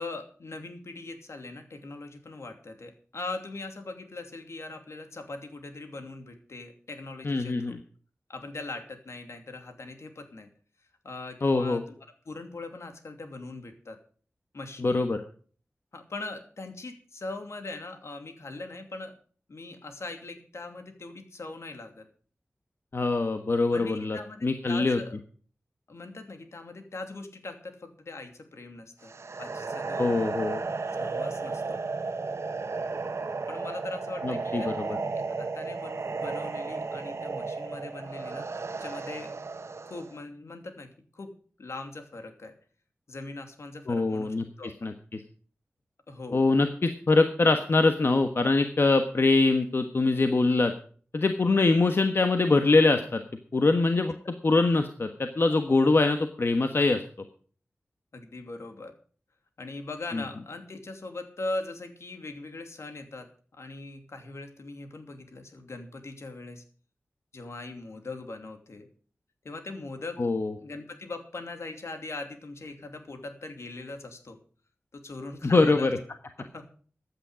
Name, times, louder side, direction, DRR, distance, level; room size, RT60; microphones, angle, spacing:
voice 1, 0.0-7.8 8.3-10.5 11.0-14.0 14.5-15.0 15.9-19.2 19.5-22.1 23.7-25.2 25.9-29.1 29.4-30.1 31.0-31.8 33.5-38.5 38.8-39.3 39.9-42.5 43.1-44.7 46.1-46.5 54.2-54.3 58.1-58.9 59.6-66.6 67.3-68.9 69.4-70.2 70.6-74.4 74.9-75.9 76.4-76.7, left 2 dB, 75° left, 6 dB, 2.8 m, -40 dB
voice 2, 7.2-7.8 11.4-11.8 14.8-15.2 22.9-25.0 30.0-30.6 34.2-34.8 43.9-44.4 44.8-45.2 46.3-50.7 51.1-53.2 53.5-54.1 54.4-57.0 60.1-60.2 70.2-70.5 75.4-75.9, left 3 dB, 55° left, 6 dB, 1.3 m, -23 dB
sound 1, 29.0-40.2, right 4 dB, 75° right, 1.2 m, -34 dB
15.5 x 10.0 x 5.0 m, 0.44 s
wide cardioid pair, 85°, 5 cm